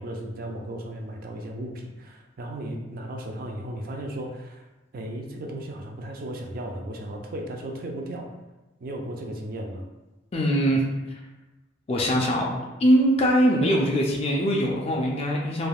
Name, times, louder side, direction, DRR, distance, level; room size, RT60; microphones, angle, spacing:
voice 1, 0.0-4.6 4.9-8.3 8.8-9.8, right 1 dB, 45° right, 1 dB, 0.4 m, -35 dB
voice 2, 10.3-10.8 11.9-15.7, equal, 30° left, -1 dB, 0.4 m, -22 dB
3.3 x 2.2 x 2.3 m, 1.1 s
head